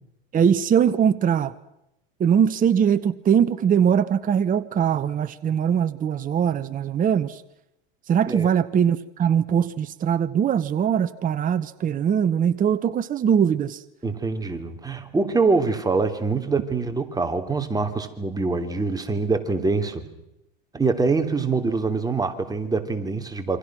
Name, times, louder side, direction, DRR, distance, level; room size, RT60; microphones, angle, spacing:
voice 1, 0.3-1.5 2.2-7.4 8.1-13.8, right 8 dB, 30° right, 12 dB, 1.0 m, -21 dB
voice 2, 14.0-20.1 20.7-23.6, right 4 dB, 15° right, 6 dB, 3.1 m, -24 dB
28.0 x 24.5 x 6.2 m, 0.85 s
supercardioid pair, 115°, 29 cm